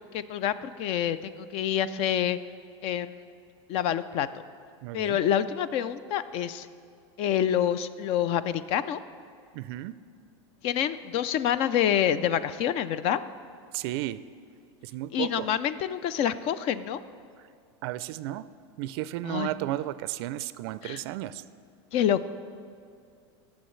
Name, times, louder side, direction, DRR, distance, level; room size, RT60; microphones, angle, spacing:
voice 1, 0.0-2.4 2.8-3.2 3.7-4.3 4.9-6.7 7.2-9.0 10.6-13.2 15.1-17.0 19.2-19.5 20.8-21.0 21.9-22.3, left 10 dB, 45° left, 15 dB, 0.4 m, -27 dB
voice 2, 4.8-5.2 9.5-9.9 13.7-14.2 14.8-15.5 17.8-18.5 18.8-21.4, right 15 dB, 60° right, 15 dB, 0.4 m, -33 dB
19.5 x 7.2 x 3.2 m, 2.3 s
supercardioid pair, 140°, 15 cm